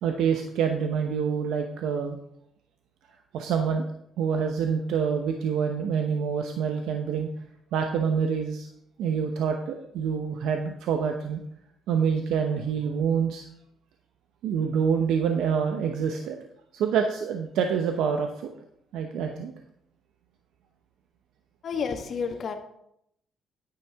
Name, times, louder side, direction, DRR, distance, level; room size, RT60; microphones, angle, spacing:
voice 1, 0.0-2.2 3.3-3.9 4.2-7.3 7.7-8.7 9.0-11.4 11.9-13.4 14.4-16.4 16.7-18.3 18.9-19.5, right 7 dB, 85° right, 4 dB, 0.8 m, -26 dB
voice 2, 21.6-22.6, left 6 dB, 55° left, 6 dB, 1.4 m, -30 dB
10.0 x 9.2 x 3.5 m, 0.75 s
cardioid pair, 90°, 0 cm